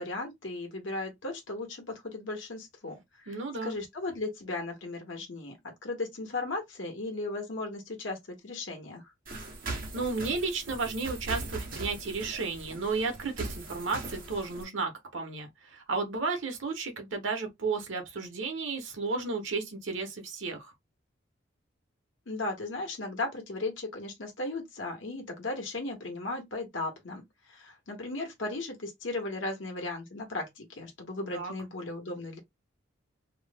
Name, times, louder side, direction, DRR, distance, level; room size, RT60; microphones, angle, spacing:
voice 1, 0.0-5.6 5.8-9.1 22.3-32.4, left 2 dB, 85° left, 1.1 m, -36 dB
voice 2, 3.3-3.7 9.9-20.7 31.3-31.5, right 4 dB, 85° right, 1.0 m, -33 dB
sound 1, 9.3-14.6, right 2 dB, 45° right, 1.1 m, -40 dB
3.0 x 2.0 x 3.4 m
head